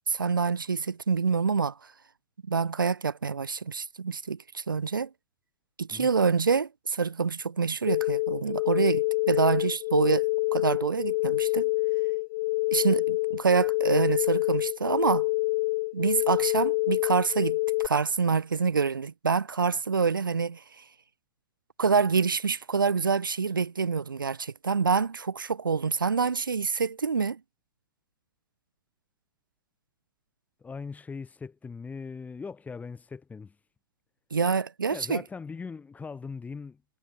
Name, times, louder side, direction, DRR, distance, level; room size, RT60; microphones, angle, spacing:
voice 1, 0.1-1.7 2.5-5.1 5.8-11.7 12.7-15.3 15.9-17.6 17.8-20.8 21.8-27.4 34.3-35.2, right 5 dB, 80° right, 2.2 m, -26 dB
sound 1, 7.9-17.9, left 23 dB, 50° left, 2.6 m, -27 dB
voice 2, 30.6-33.5 34.9-36.8, left 5 dB, 15° left, 7.7 m, -40 dB
figure-of-eight pair, 105°, 11 cm